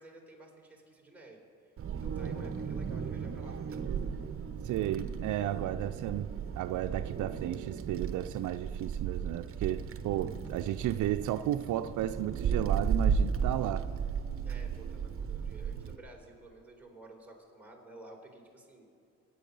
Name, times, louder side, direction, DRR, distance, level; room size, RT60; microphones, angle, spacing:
voice 1, 0.0-1.7 2.0-3.8 14.4-18.9, right 2 dB, 5° right, -1 dB, 4.1 m, -53 dB
Wind, 1.8-16.0, right 6 dB, 45° right, 1.0 m, -35 dB
voice 2, 4.6-6.3 6.6-13.8, right 12 dB, 75° right, 10 dB, 0.5 m, -33 dB
23.5 x 9.2 x 5.4 m, 2.5 s
cardioid pair, 90°, 30 cm